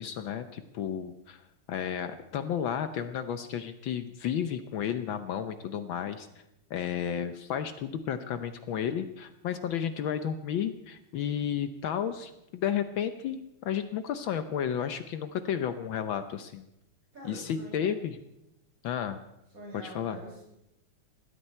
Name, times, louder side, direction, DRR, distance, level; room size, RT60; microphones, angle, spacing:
voice 1, 0.0-6.3 6.7-16.6 17.2-18.2 18.8-19.2 19.7-20.2, left 8 dB, 70° left, 10 dB, 1.5 m, -32 dB
voice 2, 17.1-17.9 19.5-20.4, right 1 dB, 35° right, -3 dB, 7.4 m, -45 dB
21.0 x 15.5 x 4.4 m, 0.88 s
omnidirectional pair, 2.4 m